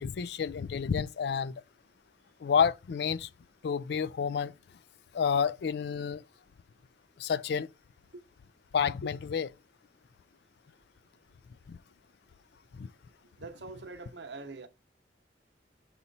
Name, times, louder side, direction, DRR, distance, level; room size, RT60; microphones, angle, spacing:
voice 1, 0.0-1.5 2.4-3.3 3.6-4.5 5.1-6.2 7.2-7.7 8.7-9.5 11.7-11.8 12.8-12.9, left 6 dB, 65° left, 0.3 m, -29 dB
voice 2, 13.4-14.7, right 3 dB, 75° right, 0.9 m, -43 dB
5.4 x 4.3 x 4.0 m
head